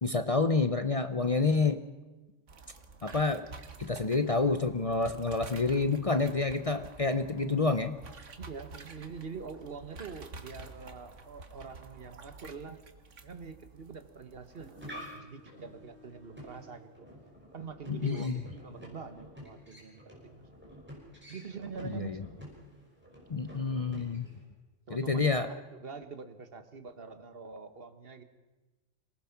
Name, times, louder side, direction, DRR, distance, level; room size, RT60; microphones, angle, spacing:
voice 1, 0.0-1.8 3.0-3.5 3.8-8.0 17.9-18.4 21.9-22.2 23.3-24.3 24.9-25.5, left 3 dB, 35° left, 9 dB, 0.7 m, -28 dB
sound 1, 2.5-15.2, right 3 dB, 80° right, 1.8 m, -50 dB
voice 2, 8.4-12.8 13.2-17.1 17.5-20.4 21.3-22.2 24.9-28.2, right 5 dB, 50° right, 9 dB, 1.6 m, -45 dB
sound 2, 14.4-24.4, equal, 10° right, 5.7 m, -50 dB
26.5 x 19.0 x 5.9 m, 1.2 s
omnidirectional pair, 1.3 m